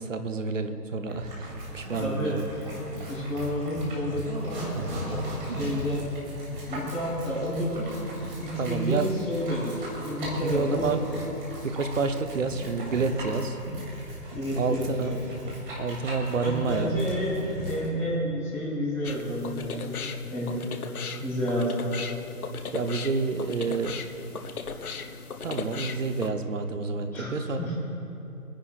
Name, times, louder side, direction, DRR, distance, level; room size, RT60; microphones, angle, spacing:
voice 1, 0.0-2.4 8.6-9.1 10.4-11.0 11.6-13.6 14.6-15.1 15.8-16.9 22.7-24.0 24.8-25.1 25.4-27.7, right 4 dB, 55° right, 8 dB, 0.9 m, -29 dB
sound 1, 1.1-17.9, equal, 35° right, 2.8 m, -38 dB
voice 2, 2.0-2.3 3.1-6.1 6.7-7.9 8.4-10.9 14.3-15.2 16.4-20.0 20.3-20.9 21.2-21.9 27.1-27.7, equal, 5° left, -15 dB, 3.5 m, -30 dB
sound 2, 19.0-26.3, left 5 dB, 65° left, 0.8 m, -37 dB
28.0 x 10.0 x 2.5 m, 3.0 s
hypercardioid pair, 165°, 47 cm